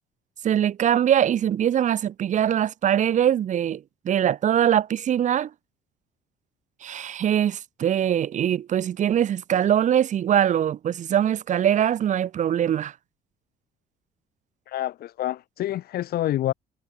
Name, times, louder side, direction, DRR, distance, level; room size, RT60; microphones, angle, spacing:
voice 1, 0.4-5.5 6.8-12.9, right 10 dB, 45° right, 0.9 m, -22 dB
voice 2, 14.7-16.5, left 13 dB, 65° left, 1.6 m, -27 dB
cardioid pair, 110°, 17 cm